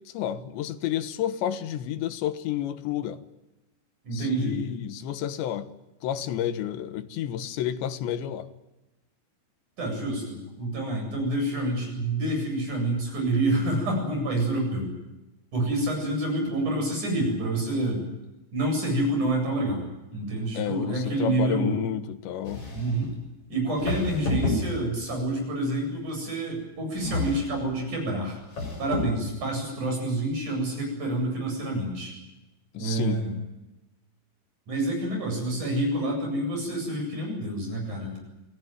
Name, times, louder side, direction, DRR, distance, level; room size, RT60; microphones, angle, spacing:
voice 1, 0.0-3.2 4.1-5.7 6.0-8.5 20.6-22.7 32.8-33.2, left 11 dB, 90° left, 3.5 m, -30 dB
voice 2, 4.0-4.6 9.8-14.9 15.5-18.0 18.5-19.8 20.1-21.8 22.7-23.1 23.5-28.4 28.8-32.2 32.7-33.3 34.7-38.1, right 1 dB, 45° right, 9.4 m, -28 dB
sound 1, 22.4-23.1 23.8-25.1 27.0-27.7 28.4-29.3, left 2 dB, 35° left, 7.1 m, -30 dB
27.5 x 18.0 x 9.2 m
omnidirectional pair, 4.9 m